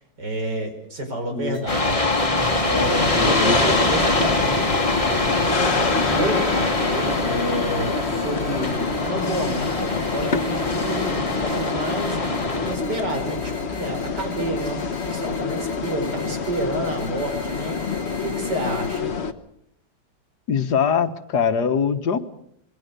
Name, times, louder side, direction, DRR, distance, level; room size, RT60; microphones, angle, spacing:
voice 1, 0.2-2.1 2.6-4.8 5.0-17.8 18.2-19.1, right 1 dB, 80° right, 5 dB, 5.6 m, -30 dB
voice 2, 1.3-1.6 3.1-3.5 20.5-22.2, left 6 dB, 70° left, 9 dB, 1.9 m, -22 dB
sound 1, 1.5-19.0, left 1 dB, 35° right, 6.5 m, -43 dB
sound 2, 1.7-12.8, left 2 dB, 20° left, 2.1 m, -23 dB
sound 3, 2.8-19.3, left 5 dB, 45° left, 1.4 m, -27 dB
26.5 x 21.0 x 6.7 m, 0.72 s
omnidirectional pair, 1.8 m